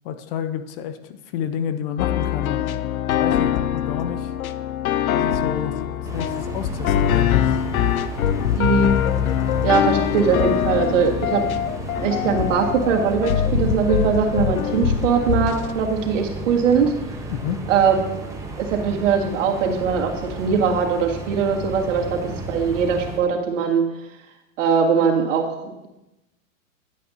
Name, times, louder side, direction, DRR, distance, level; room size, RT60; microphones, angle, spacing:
voice 1, 0.0-2.7 3.1-4.3 5.1-5.8 6.1-7.6 17.3-17.6, left 8 dB, 45° left, 11 dB, 0.7 m, -29 dB
sound 1, 2.0-15.7, left 10 dB, 85° left, 0.6 m, -23 dB
sound 2, 6.0-23.2, right 2 dB, 5° right, 0.9 m, -34 dB
voice 2, 8.6-8.9 9.6-11.4 12.0-16.9 17.7-18.0 18.6-20.1 20.4-23.8 24.6-25.9, right 6 dB, 65° right, 1 dB, 1.9 m, -21 dB
10.5 x 8.3 x 2.8 m, 0.94 s
hypercardioid pair, 125°, 41 cm